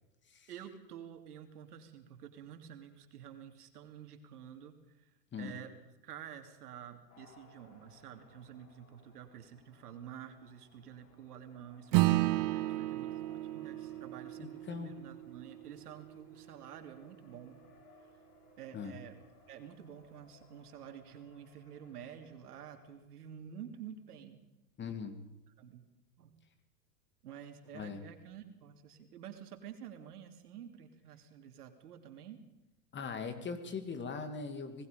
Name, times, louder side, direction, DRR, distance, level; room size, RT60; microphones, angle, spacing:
voice 1, 0.5-5.1 5.4-5.7 6.0-17.6 18.6-19.2 19.5-24.4 25.6-25.8 26.2-26.3 27.2-32.4, right 9 dB, 75° right, 6 dB, 3.3 m, -50 dB
Race car auto racing, 7.1-23.0, left 4 dB, 70° left, 6.2 m, -64 dB
Acoustic guitar / Strum, 11.9-16.7, right 18 dB, 40° right, 1.1 m, -33 dB
voice 2, 14.4-14.9 18.7-19.0 24.8-25.1 27.7-28.0 32.9-34.9, left 5 dB, 25° left, 9 dB, 2.5 m, -40 dB
26.5 x 20.5 x 5.3 m, 1.0 s
hypercardioid pair, 110°, 46 cm